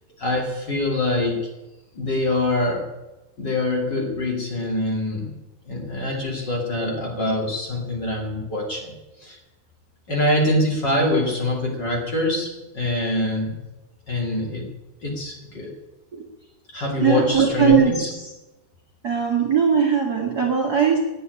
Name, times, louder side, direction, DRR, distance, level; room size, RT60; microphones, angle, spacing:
voice 1, 0.2-1.4 1.9-2.9 3.4-5.3 5.7-8.9 9.2-9.4 10.1-13.5 14.1-14.7 15.0-15.7 16.7-18.1, left 1 dB, 35° left, -1 dB, 3.1 m, -24 dB
voice 2, 17.0-18.2 19.0-21.0, right 6 dB, 35° right, -1 dB, 2.2 m, -20 dB
11.0 x 9.4 x 9.8 m, 1.0 s
omnidirectional pair, 3.5 m